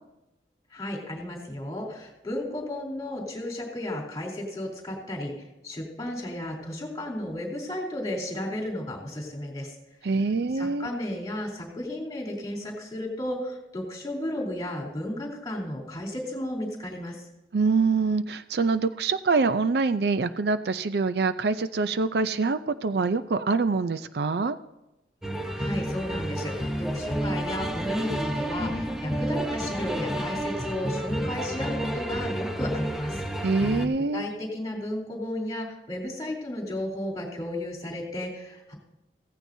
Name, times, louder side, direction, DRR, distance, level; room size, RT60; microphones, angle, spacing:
voice 1, 0.7-9.8 10.0-10.1 10.6-17.3 25.6-33.2 34.1-38.7, left 1 dB, 20° left, -2 dB, 3.5 m, -33 dB
voice 2, 10.0-10.9 17.5-24.6 33.4-34.2, right 4 dB, 60° right, 11 dB, 0.5 m, -25 dB
sound 1, 25.2-33.9, right 1 dB, 5° right, 1.0 m, -30 dB
16.0 x 15.5 x 2.7 m, 0.93 s
head